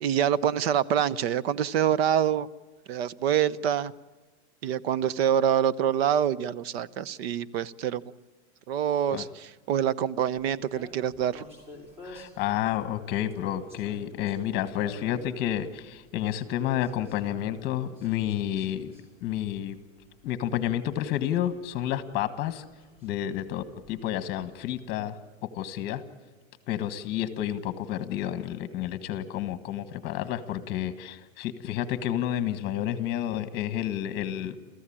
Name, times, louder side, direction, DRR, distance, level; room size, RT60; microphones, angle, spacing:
voice 1, 0.0-2.5 2.9-3.9 4.6-8.0 8.7-11.5, right 9 dB, 70° right, 20 dB, 0.9 m, -26 dB
sound 1, 10.4-24.8, left 1 dB, 20° right, 5.8 m, -53 dB
voice 2, 12.0-19.0 19.2-19.8 20.2-22.6 23.0-26.0 26.7-34.6, left 11 dB, 30° left, 12 dB, 1.5 m, -30 dB
29.0 x 15.0 x 8.7 m, 1.3 s
supercardioid pair, 170°, 32 cm